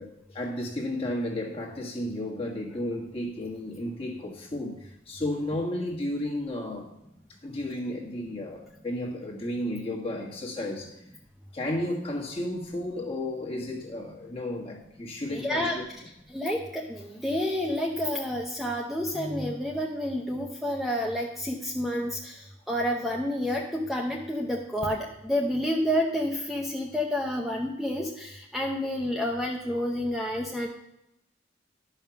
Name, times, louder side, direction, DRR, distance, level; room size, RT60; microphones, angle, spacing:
voice 1, 0.0-6.9 7.4-11.0 11.5-15.8, left 1 dB, 30° left, 1.6 m, -33 dB
voice 2, 15.3-15.8 16.3-22.4 22.7-30.7, left 1 dB, ahead, 0.7 m, -29 dB
12.0 x 5.7 x 5.8 m
head